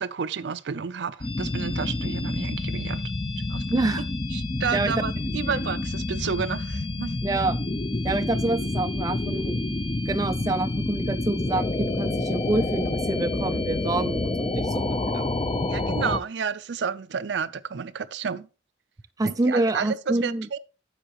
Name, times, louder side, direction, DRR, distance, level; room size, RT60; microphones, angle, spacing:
voice 1, 0.0-3.0 3.5-3.9 4.3-7.1 15.7-18.5 19.2-20.6, right 6 dB, 75° right, 0.5 m, -31 dB
sound 1, 1.2-16.2, left 2 dB, 30° left, 0.6 m, -28 dB
voice 2, 3.7-4.0 4.7-4.9 5.5-5.6 7.2-7.6 8.0-9.6 10.1-15.3 19.2-20.5, right 2 dB, 20° right, 0.4 m, -27 dB
9.9 x 7.2 x 2.9 m
head